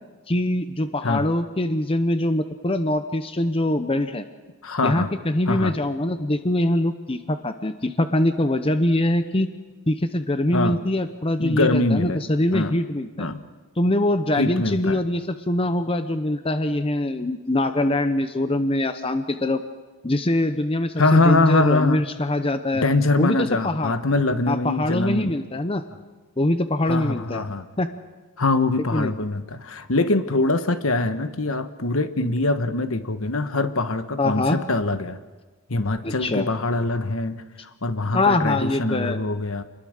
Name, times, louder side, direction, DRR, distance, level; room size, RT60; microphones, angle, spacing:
voice 1, 0.3-4.2 4.8-9.5 9.9-13.3 13.8-19.6 20.0-22.8 23.2-23.9 24.5-25.8 26.4-27.4 27.8-27.9 28.9-29.1 34.2-34.6 36.0-36.5 38.1-39.2, left 1 dB, 25° left, 10 dB, 0.8 m, -23 dB
voice 2, 4.6-5.1 5.5-5.8 10.5-10.8 11.4-12.2 12.5-12.7 13.2-13.4 14.4-15.0 21.0-22.0 22.7-25.4 26.9-27.7 28.4-35.2 35.7-37.4 37.8-39.6, left 2 dB, 70° left, 10 dB, 1.3 m, -23 dB
27.5 x 21.0 x 6.6 m, 1.2 s
head